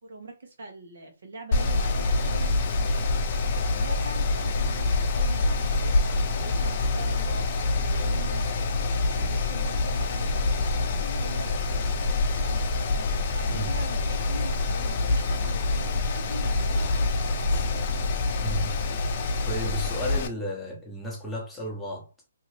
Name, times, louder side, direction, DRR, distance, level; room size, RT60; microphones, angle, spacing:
voice 1, 0.0-3.1 3.7-12.2 13.3-17.6, right 2 dB, 70° right, 1.1 m, -43 dB
Mechanical fan, 1.5-20.3, left 3 dB, 40° left, 0.5 m, -26 dB
voice 2, 18.4-18.8 19.4-22.1, equal, 5° left, 0.9 m, -34 dB
2.7 x 2.6 x 3.1 m
hypercardioid pair, 155°, 0 cm